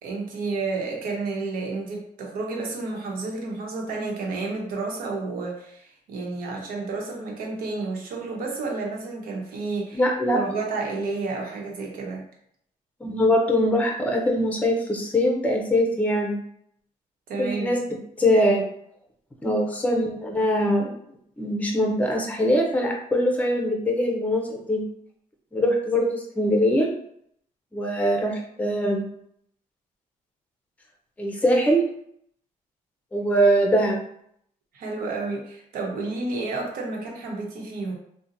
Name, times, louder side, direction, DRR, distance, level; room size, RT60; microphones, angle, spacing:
voice 1, 0.0-12.2 17.3-17.8 34.7-37.9, right 3 dB, 90° right, 0 dB, 0.9 m, -31 dB
voice 2, 9.9-10.4 13.0-16.4 17.4-17.8 18.2-18.6 19.4-20.9 21.4-24.8 25.5-26.9 27.7-29.0 31.2-31.8 33.1-34.0, equal, 10° left, 0 dB, 0.5 m, -22 dB
2.8 x 2.1 x 3.8 m, 0.70 s
cardioid pair, 170°, 15 cm